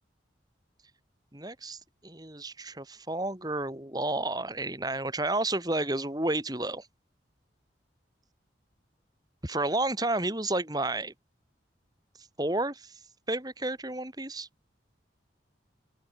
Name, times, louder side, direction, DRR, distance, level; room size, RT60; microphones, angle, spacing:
voice 1, 1.3-6.9 9.4-11.1 12.4-12.9 13.3-14.5, right 2 dB, 20° right, 3.1 m, -31 dB
open air
head